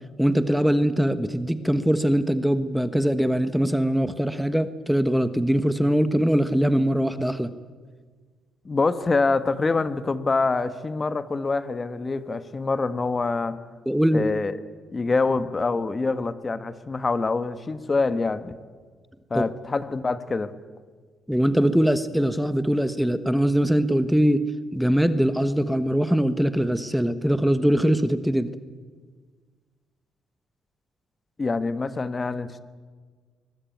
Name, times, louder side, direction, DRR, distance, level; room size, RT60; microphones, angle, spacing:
voice 1, 0.2-7.5 13.9-14.3 19.3-19.4 21.3-28.5, equal, ahead, 11 dB, 1.2 m, -22 dB
voice 2, 8.6-13.6 14.1-14.5 14.9-18.5 19.3-20.5 31.4-32.6, left 3 dB, 30° left, 12 dB, 1.4 m, -25 dB
23.0 x 20.0 x 9.2 m, 1.5 s
cardioid pair, 90°, 0 cm